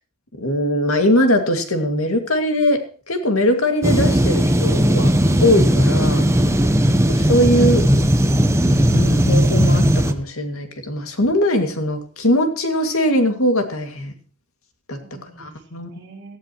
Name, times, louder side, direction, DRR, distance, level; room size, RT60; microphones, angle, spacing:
voice 1, 0.4-6.3 7.1-7.9 8.9-14.1 14.9-15.0 15.4-15.9, left 1 dB, 85° left, 6 dB, 2.2 m, -20 dB
sound 1, 3.8-10.1, equal, 15° right, 1.0 m, -16 dB
voice 2, 15.0-16.4, right 3 dB, 55° right, -1 dB, 3.8 m, -42 dB
18.0 x 14.5 x 3.0 m, 0.39 s
head